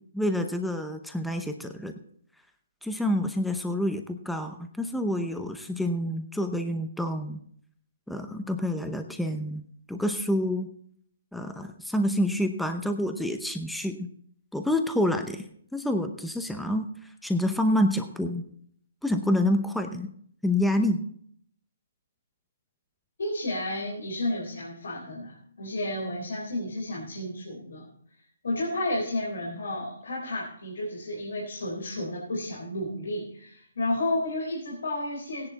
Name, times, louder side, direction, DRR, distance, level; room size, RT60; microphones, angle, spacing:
voice 1, 0.1-1.9 2.8-7.4 8.1-9.6 9.9-10.7 11.3-14.1 14.5-15.4 15.7-18.4 19.0-20.1 20.4-21.1, left 1 dB, ahead, 6 dB, 0.7 m, -28 dB
voice 2, 23.2-27.8 28.4-35.5, left 1 dB, 80° left, -3 dB, 4.1 m, -32 dB
16.0 x 10.5 x 4.1 m, 0.64 s
hypercardioid pair, 155°, 0 cm